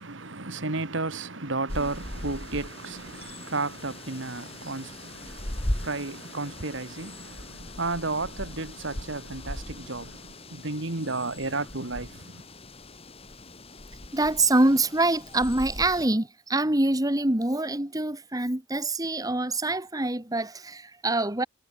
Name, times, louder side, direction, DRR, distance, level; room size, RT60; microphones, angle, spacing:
voice 1, 0.0-12.4, right 3 dB, 65° right, 2.0 m, -33 dB
sound 1, 1.7-16.1, left 1 dB, 30° left, 2.8 m, -39 dB
voice 2, 14.1-21.4, right 2 dB, 20° right, 1.6 m, -25 dB
head